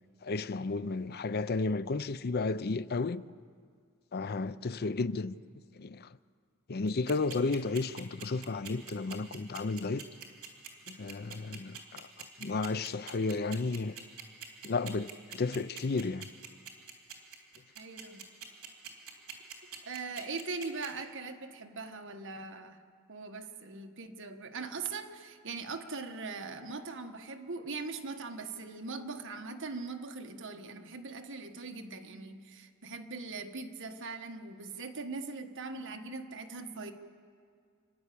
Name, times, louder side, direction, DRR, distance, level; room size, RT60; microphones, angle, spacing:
voice 1, 0.2-3.2 4.1-5.4 5.8-6.1 6.7-10.1 10.9-12.1 12.4-13.9 14.6-16.3, left 3 dB, 45° left, 0.6 m, -33 dB
sound 1, 6.9-20.9, right 8 dB, 75° right, 3.2 m, -44 dB
voice 2, 17.7-18.2 19.8-22.8 23.1-36.9, right 4 dB, 60° right, 1.5 m, -41 dB
29.0 x 11.0 x 8.6 m
head